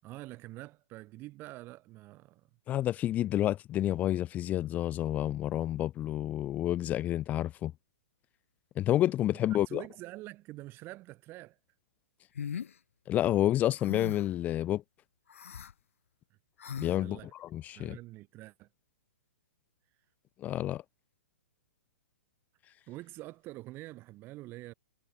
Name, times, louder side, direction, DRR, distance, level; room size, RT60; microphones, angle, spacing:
voice 1, 0.0-2.5 9.3-11.6 16.9-17.3 17.8-18.7 22.9-24.7, right 18 dB, 30° right, 7.8 m, -46 dB
voice 2, 2.7-7.7 8.8-9.8 13.1-14.8 16.8-18.0 20.4-20.8, left 13 dB, 20° left, 0.4 m, -29 dB
sound 1, 12.4-12.7 13.8-14.4 15.3-15.7 16.6-17.0, left 7 dB, 75° left, 1.3 m, -39 dB
hypercardioid pair, 125°, 7 cm